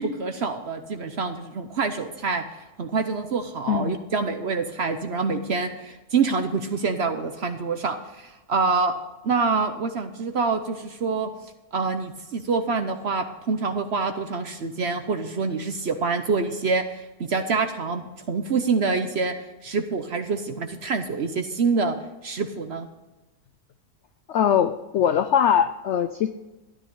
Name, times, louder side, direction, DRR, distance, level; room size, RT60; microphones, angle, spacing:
voice 1, 0.0-8.9 9.2-11.3 11.7-19.3 19.6-22.0 22.2-22.9, right 4 dB, 50° right, 7 dB, 0.8 m, -26 dB
voice 2, 24.3-26.3, left 8 dB, 85° left, 11 dB, 0.6 m, -21 dB
12.5 x 11.0 x 3.9 m, 1.1 s
omnidirectional pair, 1.8 m